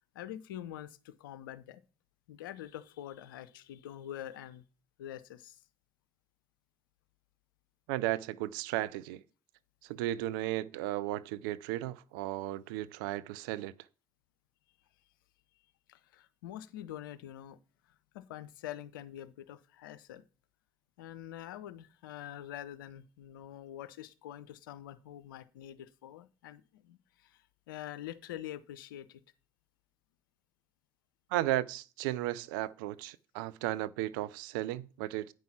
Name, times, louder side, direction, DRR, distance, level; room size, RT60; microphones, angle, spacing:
voice 1, 0.1-1.8 2.3-4.6 5.0-5.6 15.9-17.6 18.1-20.2 21.0-27.4 27.7-29.2, left 12 dB, 85° left, 0.5 m, -45 dB
voice 2, 7.9-9.2 9.8-13.7 31.3-35.3, right 15 dB, 80° right, 0.4 m, -35 dB
9.2 x 5.5 x 5.9 m
hypercardioid pair, 50°, 11 cm